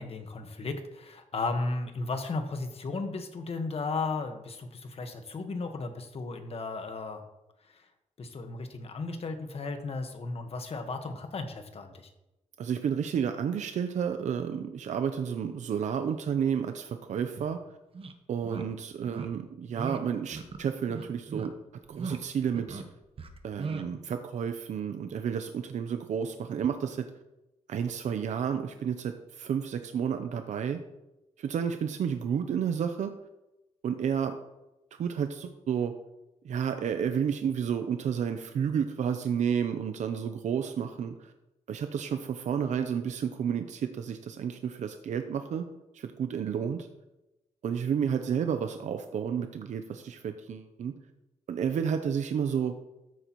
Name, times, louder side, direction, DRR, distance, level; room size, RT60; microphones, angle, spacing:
voice 1, 0.0-7.2 7.7-7.8 8.2-12.1, left 3 dB, 50° left, 6 dB, 1.4 m, -35 dB
voice 2, 12.6-17.6 18.3-21.5 21.9-22.8 23.4-27.0 27.7-30.8 31.4-33.1 33.8-34.3 34.9-35.9 36.4-41.3 41.7-45.7 45.9-46.9 47.6-50.9 51.5-52.7, right 7 dB, 70° right, 7 dB, 0.7 m, -31 dB
sound 1, 17.4-17.5 17.9-18.1 18.4-18.6 19.0-19.3 19.7-20.0 20.3-20.6 20.9-21.5 21.9-22.2 22.4-22.8 23.2-23.9, right 4 dB, 50° right, 1.0 m, -37 dB
13.5 x 8.1 x 3.1 m, 0.96 s
cardioid pair, 90°, 13 cm